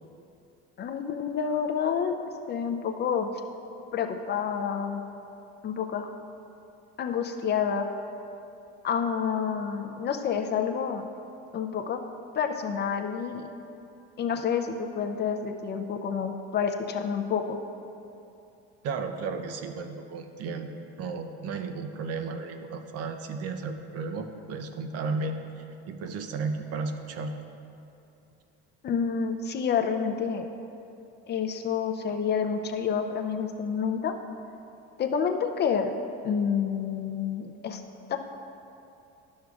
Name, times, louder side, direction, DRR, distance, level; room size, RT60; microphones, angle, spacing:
voice 1, 0.8-2.1 2.5-3.3 3.9-5.0 5.6-6.1 7.0-7.9 8.8-11.0 11.5-12.0 12.3-13.5 14.2-17.6 28.8-30.5 31.3-34.1 35.0-35.9 36.2-37.8 38.1-38.2, left 7 dB, 35° left, 6 dB, 0.5 m, -28 dB
voice 2, 18.8-20.7 21.0-27.4 28.9-29.0, right 4 dB, 55° right, 7 dB, 0.6 m, -34 dB
12.0 x 6.4 x 2.3 m, 2.7 s
cardioid pair, 115°, 30 cm